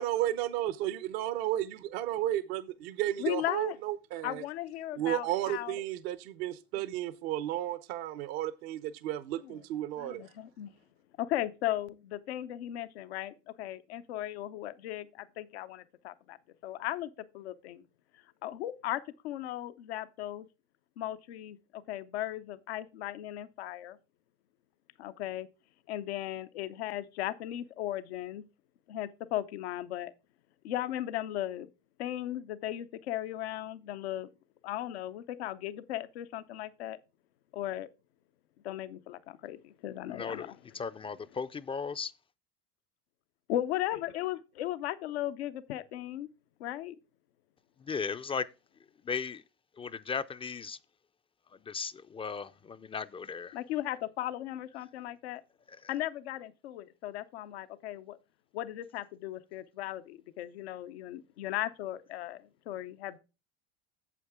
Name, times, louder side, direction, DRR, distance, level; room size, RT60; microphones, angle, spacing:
voice 1, 0.0-4.4 5.0-10.2, right 13 dB, 75° right, 0.8 m, -33 dB
voice 2, 3.2-3.8 4.2-5.8 9.4-9.6 10.0-10.7 11.2-16.4 16.6-17.8 18.4-20.5 21.0-24.0 25.0-25.5 25.9-28.4 28.9-30.1 30.6-31.7 32.0-34.3 34.6-37.0 37.5-37.9 38.6-40.5 43.5-46.3 46.6-46.9 53.5-55.4 55.9-58.2 58.5-63.2, left 13 dB, 90° left, 0.7 m, -37 dB
voice 3, 40.1-42.1 47.8-48.5 49.0-49.4 49.8-50.8 51.6-53.6, left 5 dB, 20° left, 0.3 m, -36 dB
8.4 x 7.5 x 3.6 m
supercardioid pair, 100°, 31 cm